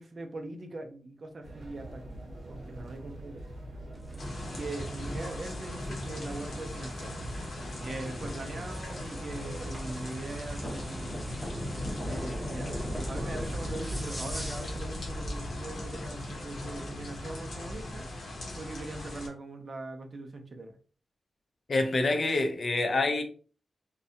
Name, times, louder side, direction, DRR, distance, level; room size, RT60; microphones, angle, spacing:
voice 1, 0.0-3.4 4.6-7.2 7.8-11.2 12.0-18.1 18.6-20.8, right 2 dB, 45° right, 0.4 m, -41 dB
sound 1, 1.4-14.9, right 1 dB, 80° right, 0.7 m, -43 dB
sound 2, 3.9-14.9, equal, 5° left, 0.7 m, -43 dB
sound 3, 4.2-19.3, left 1 dB, 80° left, 0.7 m, -38 dB
voice 2, 21.7-23.2, left 2 dB, 45° left, 0.4 m, -26 dB
2.6 x 2.1 x 2.6 m
wide cardioid pair, 165°, 0 cm